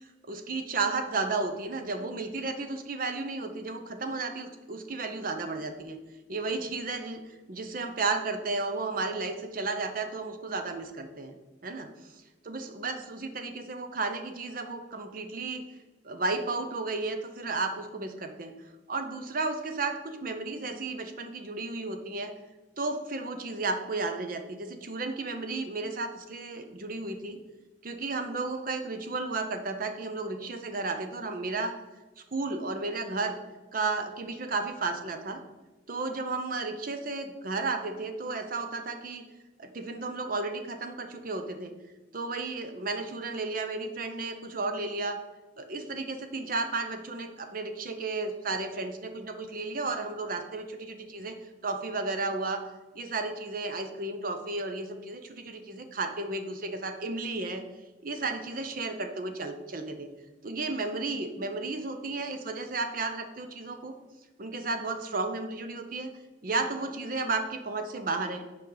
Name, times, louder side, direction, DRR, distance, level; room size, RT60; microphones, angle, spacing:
voice 1, 0.2-6.0 6.3-7.2 7.5-11.4 11.6-11.9 12.4-15.6 16.0-18.5 18.9-22.3 22.8-27.4 27.8-31.7 32.2-33.4 33.7-35.4 35.9-39.2 39.6-41.7 42.1-45.2 45.6-51.3 51.6-52.6 52.9-57.6 58.0-60.1 60.4-63.9 64.4-66.1 66.4-68.4, right 3 dB, 45° right, 7 dB, 0.7 m, -33 dB
8.5 x 5.1 x 3.9 m, 1.1 s
head